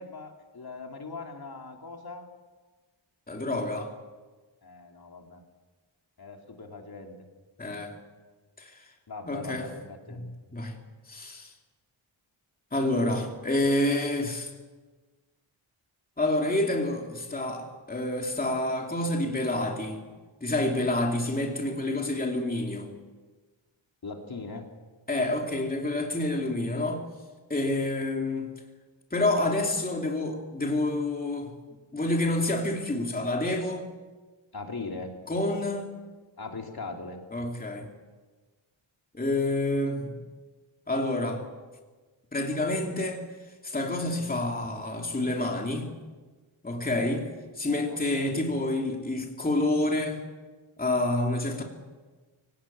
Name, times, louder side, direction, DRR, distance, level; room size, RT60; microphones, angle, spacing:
voice 1, 0.0-2.3 4.6-5.4 6.2-7.2 9.1-10.2 24.0-24.7 34.5-35.1 36.4-37.2 47.9-48.4, left 3 dB, 45° left, 2 dB, 3.0 m, -40 dB
voice 2, 3.3-3.9 7.6-8.0 8.6-8.7 9.3-9.7 10.2-10.8 11.1-11.5 12.7-14.5 16.2-20.0 20.4-22.9 25.1-27.0 27.5-28.5 29.1-31.5 31.9-33.8 35.3-35.9 37.3-37.9 39.1-40.2 40.9-41.5 42.3-43.2 43.6-45.9 46.6-47.3 47.6-50.2 50.8-51.6, left 2 dB, 20° left, 1 dB, 2.8 m, -28 dB
24.5 x 18.0 x 8.7 m, 1.3 s
wide cardioid pair, 145°, 49 cm